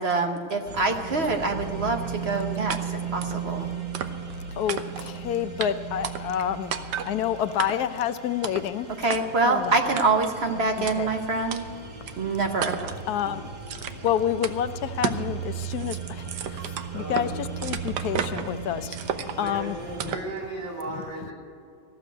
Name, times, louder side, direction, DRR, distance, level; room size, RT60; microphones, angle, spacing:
voice 1, 0.0-3.7 9.0-11.7 12.2-12.7, right 3 dB, 50° right, 5 dB, 0.8 m, -25 dB
sound 1, 0.7-20.2, right 7 dB, 30° right, 1.0 m, -37 dB
sound 2, 2.7-2.8 3.2-3.4 3.9-4.4 4.7-5.2 5.6-5.7 6.0-6.4 6.7-7.1 7.6-8.0 8.4-8.7 9.1-9.2 10.0-10.3 10.9-11.0 11.5-11.6 12.1-12.2 12.6-13.0 13.7-14.1 14.4-14.6 15.0-15.3 15.6-17.3 17.6-18.5 18.9-19.5 20.0-20.3, right 8 dB, 70° right, 1.3 m, -32 dB
voice 2, 4.5-8.9 9.5-10.0 10.8-11.1 13.1-13.5 14.0-19.8 20.0-20.1 20.9-21.0, left 10 dB, 70° left, 11 dB, 1.0 m, -29 dB
voice 3, 16.9-17.4 19.3-21.3, right 2 dB, 85° right, -3 dB, 4.6 m, -36 dB
14.5 x 6.9 x 9.1 m, 2.4 s
omnidirectional pair, 2.0 m